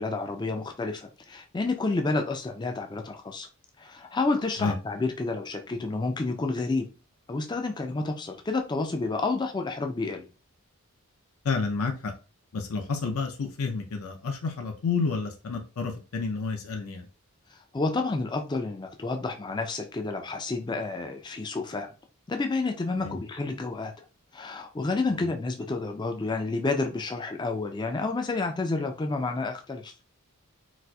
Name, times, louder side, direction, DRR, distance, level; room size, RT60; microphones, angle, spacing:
voice 1, 0.0-3.5 3.8-6.9 7.3-10.3 17.7-21.9 22.3-23.9 24.3-29.9, left 3 dB, 20° left, 0.3 m, -30 dB
voice 2, 11.4-12.1 12.5-17.1 23.0-23.2 25.1-25.2, left 4 dB, 75° left, 0.5 m, -30 dB
4.1 x 2.4 x 2.3 m
head